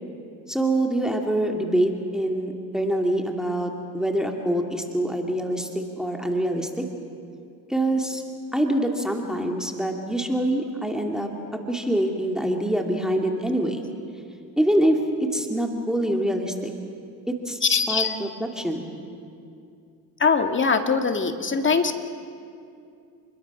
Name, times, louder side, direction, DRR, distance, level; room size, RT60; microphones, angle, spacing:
voice 1, 0.5-6.9 7.7-8.2 8.5-11.3 11.7-13.9 14.6-16.7 17.3-18.9, right 1 dB, ahead, 2 dB, 2.7 m, -25 dB
voice 2, 17.6-18.2 20.2-21.9, left 5 dB, 30° left, 6 dB, 2.1 m, -22 dB
29.5 x 22.0 x 6.3 m, 2.5 s
supercardioid pair, 80°, 39 cm